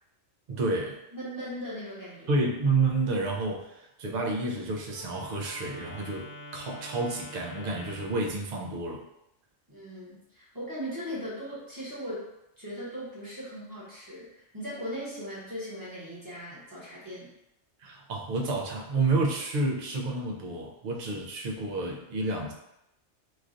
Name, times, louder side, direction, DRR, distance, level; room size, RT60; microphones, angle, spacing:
voice 1, 0.5-1.0 2.3-9.0 17.8-22.5, right 3 dB, 55° right, -1 dB, 0.5 m, -30 dB
voice 2, 1.1-2.3 9.7-12.3 12.6-17.3, equal, 20° right, -9 dB, 1.0 m, -38 dB
Wind instrument woodwind instrument, 4.8-8.4, left 1 dB, 65° left, 1.1 m, -45 dB
3.1 x 2.4 x 2.5 m, 0.86 s
omnidirectional pair, 1.2 m